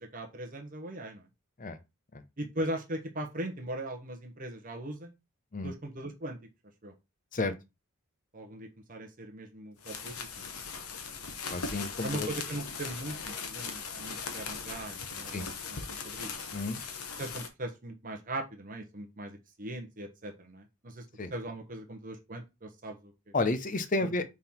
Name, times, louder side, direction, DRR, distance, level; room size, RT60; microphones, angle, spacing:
voice 1, 0.1-1.2 2.4-5.1 5.6-6.4 6.8-6.9 8.3-10.5 12.0-15.5 16.0-16.3 16.6-16.7 17.2-21.1 21.3-23.0 24.0-24.1, right 1 dB, 40° right, 1.0 m, -39 dB
sound 1, 9.8-17.5, left 5 dB, 85° left, 1.2 m, -39 dB
voice 2, 11.5-12.3 15.3-15.4 16.5-16.8 21.2-21.3 23.3-24.2, left 2 dB, 35° left, 0.7 m, -31 dB
5.8 x 3.7 x 4.4 m
head